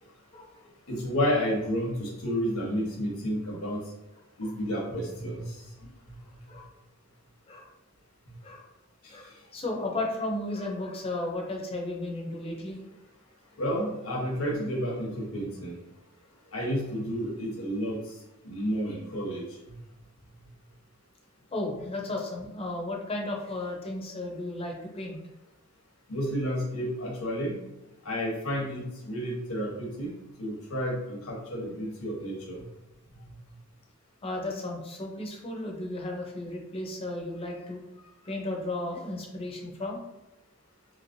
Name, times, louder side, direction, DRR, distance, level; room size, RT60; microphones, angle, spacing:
voice 1, 0.9-3.8 4.4-5.7 9.0-9.2 13.6-15.8 16.5-18.2 18.4-19.4 21.8-21.9 26.1-27.6 28.0-30.1 30.4-32.6, equal, 90° left, -3 dB, 1.1 m, -31 dB
voice 2, 9.1-12.8 21.5-25.2 34.2-37.8 38.2-40.0, left 2 dB, 30° left, 0 dB, 0.6 m, -34 dB
3.1 x 2.9 x 2.6 m, 0.94 s
head